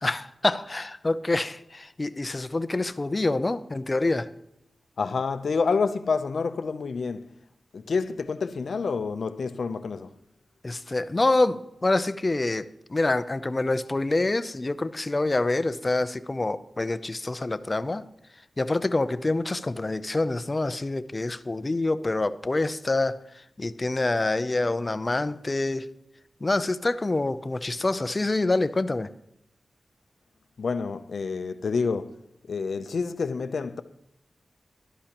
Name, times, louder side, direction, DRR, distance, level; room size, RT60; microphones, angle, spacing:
voice 1, 0.0-4.3 10.6-18.0 18.6-23.2 23.6-25.9 26.4-29.1, left 2 dB, 30° left, 0.5 m, -26 dB
voice 2, 5.0-7.3 7.7-10.2 30.6-32.1 32.4-33.8, left 4 dB, 70° left, 0.6 m, -28 dB
16.5 x 12.0 x 3.0 m
wide cardioid pair, 100°, 0 cm